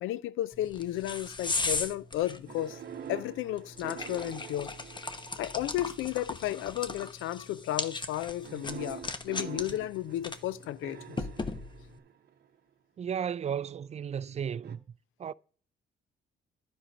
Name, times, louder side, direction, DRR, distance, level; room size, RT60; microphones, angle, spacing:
voice 1, 0.0-2.8 3.1-4.8 5.4-11.2, left 14 dB, 85° left, 0.5 m, -33 dB
sound 1, 0.5-12.0, left 3 dB, 25° left, 0.9 m, -38 dB
sound 2, 2.5-5.8 6.6-7.0 8.4-12.6 14.6-14.8, right 8 dB, 55° right, 0.8 m, -46 dB
voice 2, 13.0-14.8 15.2-15.3, right 8 dB, 35° right, 0.4 m, -34 dB
10.0 x 6.1 x 5.2 m
cardioid pair, 90°, 20 cm